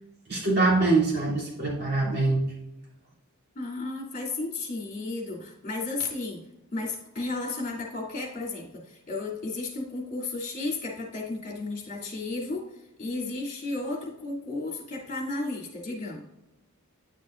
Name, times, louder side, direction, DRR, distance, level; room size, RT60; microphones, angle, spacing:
voice 1, 0.3-2.4, right 3 dB, 50° right, -6 dB, 2.9 m, -24 dB
voice 2, 3.5-6.4 6.7-12.7 13.0-16.2, left 3 dB, 35° left, -3 dB, 2.8 m, -33 dB
10.5 x 6.7 x 2.5 m, 0.95 s
head